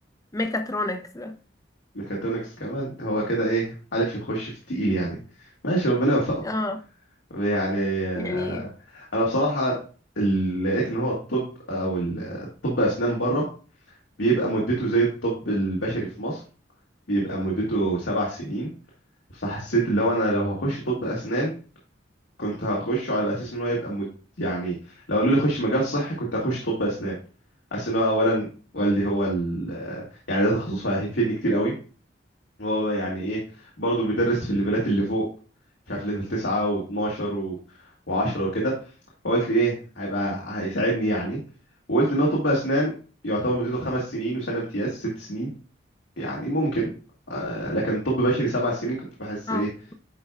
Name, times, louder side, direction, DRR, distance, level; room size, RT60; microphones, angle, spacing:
voice 1, 0.3-1.3 6.4-6.8 8.1-8.7 49.5-49.9, left 2 dB, 20° left, 0.6 m, -29 dB
voice 2, 1.9-5.2 5.6-6.4 7.3-8.6 8.9-9.7 10.2-13.4 14.2-16.4 17.1-18.7 19.3-21.5 22.4-24.0 24.4-24.8 25.1-27.2 27.7-28.5 28.7-31.7 32.6-33.4 33.8-35.3 35.9-37.6 38.1-38.7 39.2-41.4 41.9-42.9 43.2-45.5 46.2-46.9 47.3-49.7, right 1 dB, 80° left, 1.8 m, -25 dB
9.6 x 4.6 x 2.3 m
head